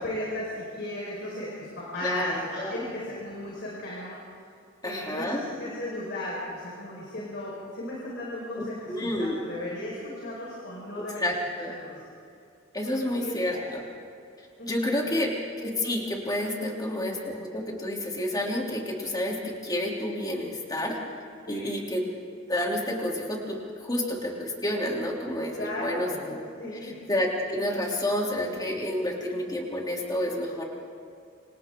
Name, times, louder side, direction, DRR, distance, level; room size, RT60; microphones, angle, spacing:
voice 1, 0.0-4.2 4.8-11.3 11.6-12.0 12.8-13.6 14.6-15.1 21.5-21.8 25.6-27.0, left 1 dB, 60° left, -5 dB, 5.0 m, -36 dB
voice 2, 2.0-2.8 4.8-5.4 8.9-9.4 11.0-11.7 12.7-13.8 14.7-15.3 15.6-21.0 21.5-22.0 22.5-26.4 26.8-30.6, left 1 dB, 20° left, -1 dB, 3.2 m, -29 dB
29.0 x 26.5 x 3.8 m, 2.5 s
head